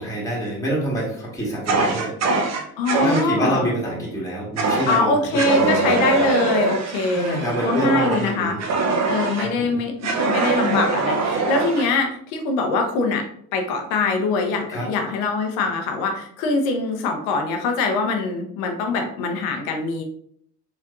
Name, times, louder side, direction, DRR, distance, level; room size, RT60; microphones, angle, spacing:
voice 1, 0.0-6.2 7.1-8.7 9.4-9.8 14.7-14.9, right 1 dB, 5° left, -4 dB, 1.7 m, -27 dB
Fire, 1.7-3.3 4.6-5.0 5.3-9.5 10.0-11.9, right 3 dB, 35° right, 0.8 m, -23 dB
voice 2, 2.8-3.7 4.9-8.6 9.0-13.2 13.5-20.0, left 3 dB, 60° left, 4 dB, 1.0 m, -23 dB
4.6 x 3.4 x 2.5 m, 0.66 s
hypercardioid pair, 65°, 47 cm